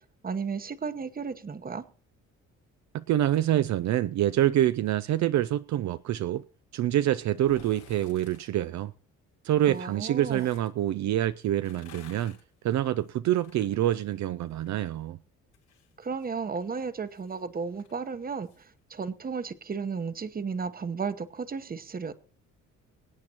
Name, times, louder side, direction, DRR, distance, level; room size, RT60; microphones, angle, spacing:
voice 1, 0.2-1.9 9.7-10.5 16.0-22.1, right 5 dB, 30° right, 1.0 m, -34 dB
voice 2, 2.9-6.4 6.7-8.9 9.4-12.4 12.6-15.2, right 12 dB, 65° right, 0.5 m, -26 dB
sound 1, 7.3-8.5 9.6-10.7 11.5-14.9 15.2-18.6 19.0-19.1, left 8 dB, 80° left, 5.1 m, -56 dB
24.0 x 8.5 x 2.9 m
cardioid pair, 90°, 30 cm